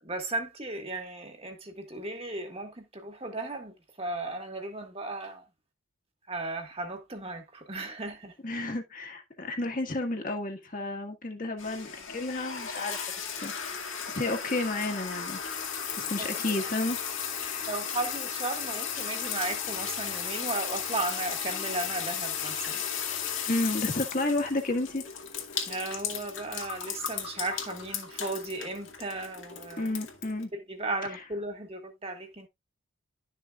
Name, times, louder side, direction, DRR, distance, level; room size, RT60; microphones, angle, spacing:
voice 1, 0.0-5.4 6.3-8.4 16.2-16.6 17.7-22.8 25.7-29.9 30.5-32.5, right 2 dB, 25° right, 1.6 m, -36 dB
voice 2, 8.4-13.0 13.4-13.5 14.1-15.4 16.0-17.7 23.5-25.0 29.8-30.5, left 2 dB, 40° left, 1.6 m, -31 dB
sound 1, 11.6-30.4, left 7 dB, 65° left, 2.2 m, -35 dB
12.0 x 6.4 x 2.4 m
head